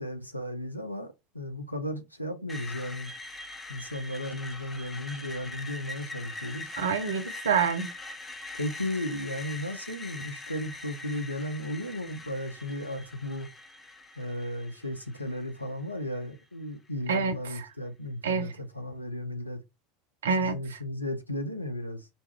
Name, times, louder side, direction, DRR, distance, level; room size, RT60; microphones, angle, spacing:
voice 1, 0.0-3.1 3.7-6.7 8.5-13.5 14.2-19.6 20.4-22.1, left 1 dB, 90° left, 0.5 m, -35 dB
Screech, 2.5-16.4, left 2 dB, 20° left, 0.7 m, -43 dB
voice 2, 6.8-7.9 17.1-17.7 18.2-18.5 20.2-20.8, right 6 dB, 70° right, 0.5 m, -27 dB
4.0 x 2.3 x 3.1 m
figure-of-eight pair, 75°, 0 cm